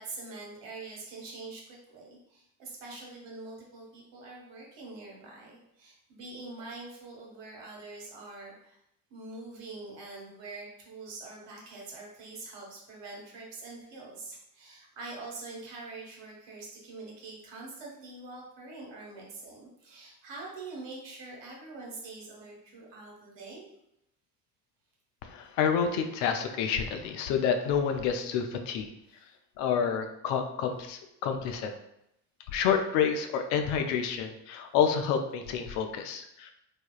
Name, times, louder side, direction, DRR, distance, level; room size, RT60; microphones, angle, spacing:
voice 1, 0.0-8.8 9.1-23.6, right 3 dB, 60° right, -2 dB, 1.1 m, -44 dB
voice 2, 25.2-28.9 29.6-31.7 32.5-36.5, left 7 dB, 65° left, 6 dB, 0.5 m, -29 dB
3.2 x 2.2 x 2.3 m, 0.80 s
hypercardioid pair, 50°, 50 cm